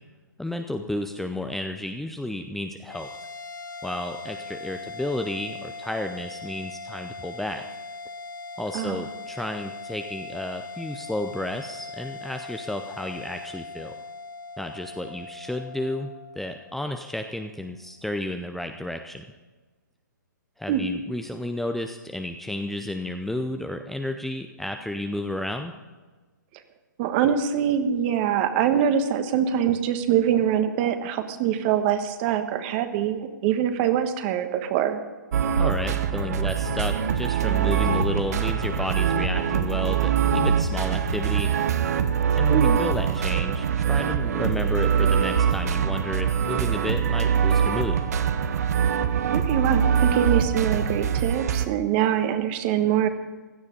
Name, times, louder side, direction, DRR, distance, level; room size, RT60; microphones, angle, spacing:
voice 1, 0.4-3.1 3.8-7.6 8.6-13.9 14.6-19.2 20.6-25.7 35.6-41.5 42.3-48.0, left 1 dB, ahead, 5 dB, 0.6 m, -32 dB
sound 1, 2.9-17.5, left 3 dB, 85° left, 1.0 m, -40 dB
voice 2, 27.0-35.0 42.5-42.8 49.3-53.1, right 9 dB, 35° right, 9 dB, 1.4 m, -24 dB
sound 2, 35.3-51.7, right 7 dB, 55° right, 1.0 m, -23 dB
16.5 x 12.0 x 5.4 m, 1.3 s
figure-of-eight pair, 125°, 10 cm